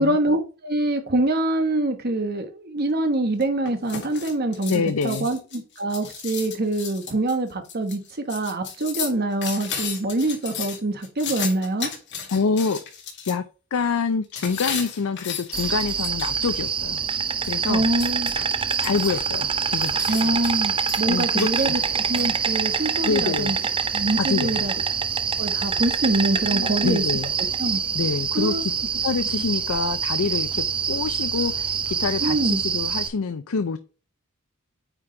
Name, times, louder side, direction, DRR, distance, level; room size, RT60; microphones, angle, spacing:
voice 1, 0.0-8.0 8.3-11.9 17.7-18.3 20.1-21.8 22.1-23.6 23.9-24.7 25.4-27.0 27.6-27.8 28.3-28.6 32.2-32.6, right 1 dB, 50° right, 1.2 m, -25 dB
sound 1, 3.4-13.3 14.4-16.6 17.4-19.4 19.7-20.6 20.9-22.3, left 7 dB, 60° left, 2.3 m, -34 dB
voice 2, 4.7-5.3 12.3-12.8 13.3-13.4 13.7-17.0 17.4-17.9 18.8-20.3 21.1-21.7 23.0-23.5 24.2-24.7 26.5-27.3 27.9-28.7 29.0-33.8, left 5 dB, 85° left, 0.5 m, -26 dB
Insect, 15.5-33.1, right 6 dB, 25° right, 0.5 m, -25 dB
9.1 x 3.6 x 3.8 m
head